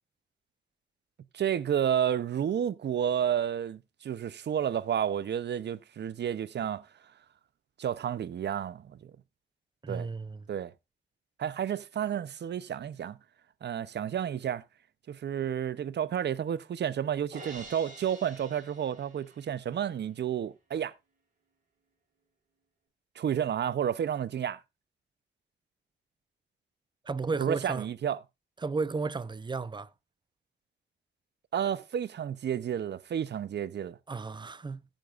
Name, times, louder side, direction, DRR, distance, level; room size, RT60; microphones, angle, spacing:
voice 1, 1.3-6.9 7.8-9.1 9.9-10.1 10.5-10.7 11.4-13.2 13.6-14.6 15.1-20.9 23.2-24.6 27.3-28.2 31.5-34.0, right 9 dB, 60° right, 0.7 m, -31 dB
voice 2, 9.8-10.5 27.0-27.9 28.6-29.9 34.1-34.9, right 4 dB, 25° right, 0.6 m, -33 dB
Crash cymbal, 17.3-19.6, right 2 dB, 40° right, 4.3 m, -47 dB
14.5 x 9.0 x 2.5 m
cardioid pair, 90°, 20 cm